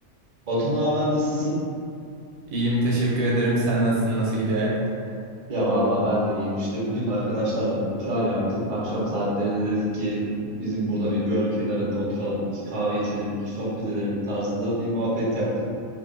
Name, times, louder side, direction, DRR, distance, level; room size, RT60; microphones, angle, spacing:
voice 1, 0.5-1.6 5.5-15.6, equal, 40° right, -7 dB, 0.7 m, -25 dB
voice 2, 2.5-4.7, right 1 dB, 80° right, -5 dB, 1.1 m, -23 dB
2.6 x 2.4 x 3.6 m, 2.4 s
omnidirectional pair, 1.5 m